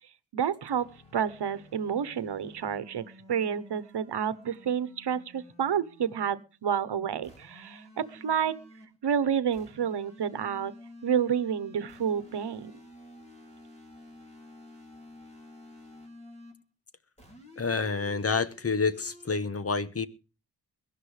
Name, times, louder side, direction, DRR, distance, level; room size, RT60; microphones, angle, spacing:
voice 1, 0.3-0.8 1.1-8.5 9.0-10.7 11.0-12.7, right 8 dB, 90° right, 1.1 m, -29 dB
sound 1, 0.6-6.3 7.2-9.0 9.5-16.6 17.2-19.4, left 1 dB, 15° left, 4.5 m, -51 dB
voice 2, 17.6-20.1, left 4 dB, 35° left, 1.0 m, -28 dB
22.5 x 12.0 x 3.3 m
wide cardioid pair, 145°, 40 cm